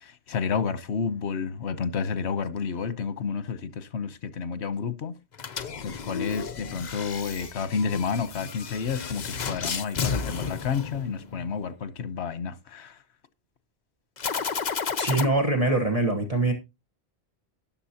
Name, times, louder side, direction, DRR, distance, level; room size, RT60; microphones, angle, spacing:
voice 1, 0.0-5.1 5.8-12.9, left 6 dB, 85° left, 1.2 m, -30 dB
sound 1, 5.3-11.5 14.2-15.3, left 6 dB, 45° left, 0.8 m, -32 dB
voice 2, 15.0-16.5, right 2 dB, 35° right, 1.3 m, -23 dB
13.0 x 10.0 x 2.8 m
omnidirectional pair, 1.1 m